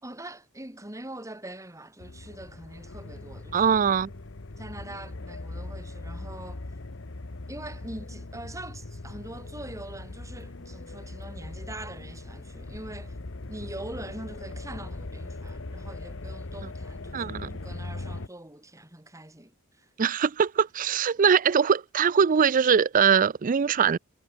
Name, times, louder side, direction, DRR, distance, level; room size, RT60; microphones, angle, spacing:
voice 1, 0.0-3.9 4.6-6.6 7.5-13.2 13.5-19.5 19.8-19.9, right 1 dB, 15° right, 3.6 m, -43 dB
sound 1, 2.0-18.3, left 2 dB, 65° left, 1.2 m, -40 dB
voice 2, 3.5-4.1 17.1-17.6 20.0-24.0, right 7 dB, 40° right, 0.4 m, -22 dB
head